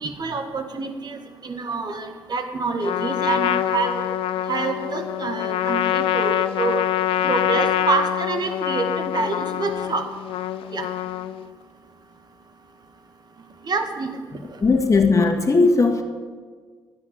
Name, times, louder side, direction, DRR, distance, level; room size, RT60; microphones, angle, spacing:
voice 1, 0.0-4.1 4.5-6.8 7.3-10.1 10.7-10.9 13.6-14.1, right 4 dB, 45° right, 6 dB, 1.8 m, -27 dB
Trumpet, 2.8-11.5, left 12 dB, 65° left, 0.6 m, -25 dB
voice 2, 14.6-16.0, left 3 dB, 35° left, 3 dB, 2.1 m, -17 dB
13.0 x 9.8 x 7.8 m, 1.5 s
hypercardioid pair, 50°, 10 cm